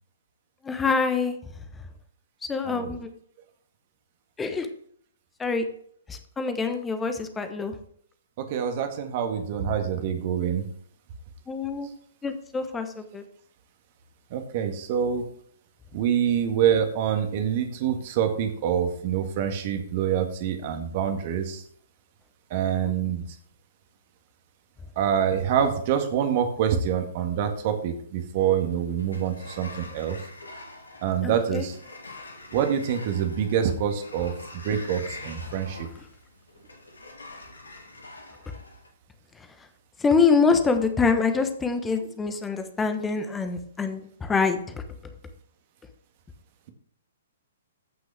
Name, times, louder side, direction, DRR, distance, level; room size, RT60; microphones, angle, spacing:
voice 1, 0.6-1.6 2.4-3.1 4.4-4.7 5.4-5.6 6.1-7.8 11.5-11.9 12.2-13.2 22.8-22.9 31.2-31.6 39.3-39.7 40.0-44.8, left 5 dB, 10° left, 8 dB, 1.1 m, -25 dB
voice 2, 8.4-10.7 14.3-15.2 15.9-21.6 22.5-23.3 25.0-30.2 31.0-31.8 32.5-35.9, right 8 dB, 40° right, 6 dB, 1.8 m, -26 dB
Sliding door, 28.4-38.9, left 2 dB, 75° left, 2.1 m, -45 dB
14.5 x 6.0 x 3.5 m, 0.62 s
figure-of-eight pair, 120°, 0 cm